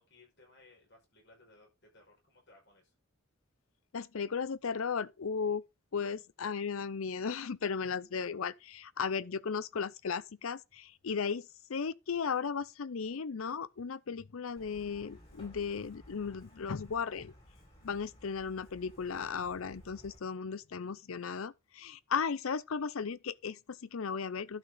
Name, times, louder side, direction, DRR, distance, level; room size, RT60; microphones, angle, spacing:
voice 1, 0.0-2.9, left 2 dB, 55° left, 5.3 m, -61 dB
voice 2, 3.9-5.7 5.9-17.3 17.8-24.6, left 6 dB, 75° left, 0.6 m, -36 dB
Truck, 14.6-20.2, equal, 30° left, 4.5 m, -57 dB
11.5 x 6.1 x 3.8 m
head